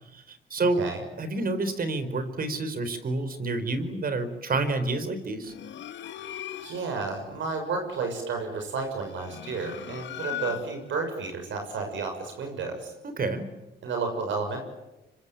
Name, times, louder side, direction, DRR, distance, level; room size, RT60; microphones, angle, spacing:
voice 1, 0.1-0.8 1.2-5.5 13.0-13.5, right 2 dB, 45° right, 10 dB, 4.4 m, -29 dB
sound 1, 5.4-7.0 8.9-10.9, left 11 dB, 65° left, 1.5 m, -38 dB
voice 2, 6.6-12.9 13.8-14.6, right 4 dB, 70° right, 4 dB, 6.8 m, -32 dB
25.5 x 25.5 x 9.2 m, 0.97 s
cardioid pair, 90°, 20 cm